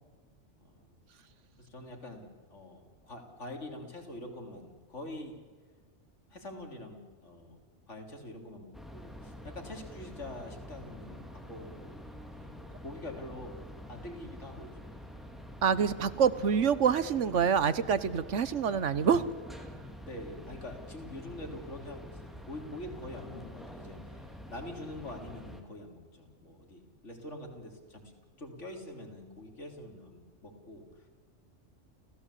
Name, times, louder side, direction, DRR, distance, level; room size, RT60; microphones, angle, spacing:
voice 1, 0.6-0.9 1.6-5.4 6.3-7.6 7.9-12.6 12.8-13.6 13.9-15.0 20.0-28.1 28.4-31.1, left 1 dB, 70° left, 3 dB, 3.7 m, -45 dB
sound 1, 8.7-25.6, equal, ahead, 2.6 m, -47 dB
voice 2, 15.6-19.2, right 7 dB, 75° right, 15 dB, 1.4 m, -26 dB
29.5 x 15.5 x 8.4 m, 1.5 s
omnidirectional pair, 1.3 m